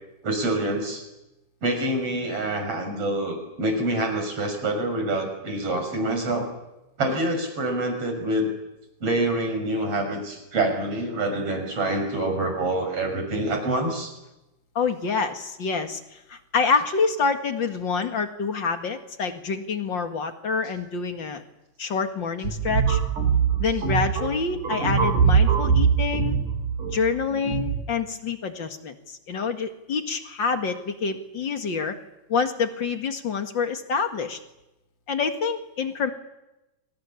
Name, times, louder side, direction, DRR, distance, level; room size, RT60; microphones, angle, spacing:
voice 1, 0.2-1.0 1.6-6.5 7.0-8.5 9.0-14.1, right 1 dB, 45° right, 5 dB, 7.1 m, -26 dB
voice 2, 14.8-21.4 21.8-23.0 23.6-26.4 26.9-32.0 32.3-34.4 35.1-36.1, left 5 dB, 40° left, 6 dB, 2.1 m, -27 dB
sound 1, 22.4-27.8, right 6 dB, 65° right, 4.2 m, -23 dB
27.0 x 26.5 x 7.2 m, 0.95 s
omnidirectional pair, 3.9 m